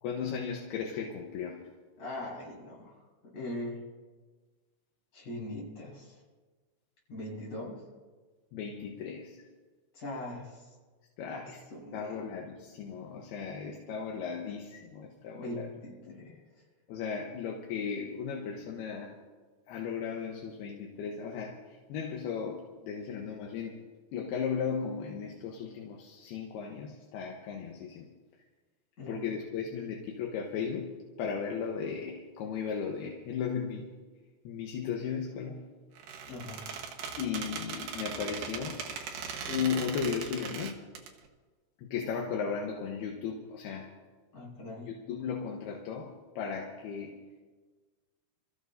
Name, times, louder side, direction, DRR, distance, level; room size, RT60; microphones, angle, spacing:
voice 1, 0.0-1.6 8.5-9.4 11.2-11.6 11.9-15.7 16.1-16.2 16.9-19.2 19.7-23.8 24.1-28.1 29.1-33.9 34.4-35.6 37.2-38.8 39.5-40.8 41.8-43.9 44.9-47.2, left 6 dB, 75° left, 0 dB, 3.0 m, -36 dB
voice 2, 2.0-3.9 5.1-6.2 7.1-7.9 9.9-10.8 11.3-12.2 15.3-16.6 29.0-29.3 36.3-36.7 44.3-44.9, left 1 dB, 45° left, -6 dB, 6.8 m, -41 dB
Squeak, 36.0-41.1, right 6 dB, 65° right, 2.7 m, -39 dB
27.5 x 14.5 x 2.7 m, 1.4 s
omnidirectional pair, 4.8 m